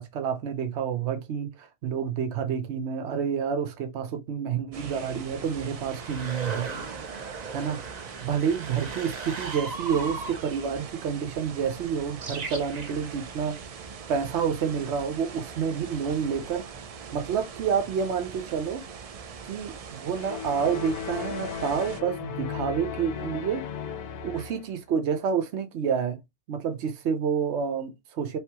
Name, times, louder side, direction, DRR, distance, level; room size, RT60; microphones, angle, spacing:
voice 1, 0.0-6.7 7.5-7.8 8.2-13.8 14.1-16.7 17.1-18.8 19.5-23.6 24.2-26.2 26.5-28.4, right 7 dB, 75° right, 1.0 m, -29 dB
sound 1, 4.7-22.0, right 6 dB, 60° right, 0.4 m, -42 dB
sound 2, 4.8-11.0 12.0-13.6 16.1-16.9, right 4 dB, 40° right, 0.8 m, -39 dB
sound 3, 20.2-24.8, left 7 dB, 65° left, 0.8 m, -35 dB
5.2 x 2.9 x 2.8 m
omnidirectional pair, 1.2 m